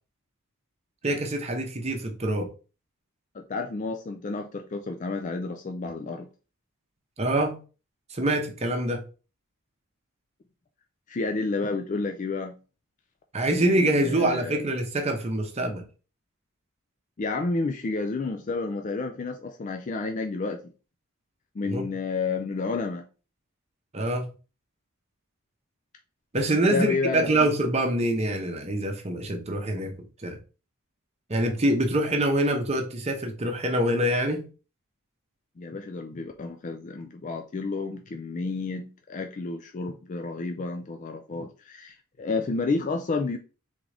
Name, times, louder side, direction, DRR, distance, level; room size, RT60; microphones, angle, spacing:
voice 1, 1.0-2.5 7.2-7.6 8.1-9.0 13.3-15.8 21.6-21.9 23.9-24.3 26.3-29.9 30.2-30.4 31.3-34.5, right 1 dB, 30° right, 0.8 m, -25 dB
voice 2, 3.3-6.3 11.1-12.6 13.5-14.6 17.2-20.7 21.6-23.1 26.5-27.4 35.6-43.4, left 3 dB, 35° left, 0.4 m, -31 dB
3.7 x 3.6 x 3.3 m
head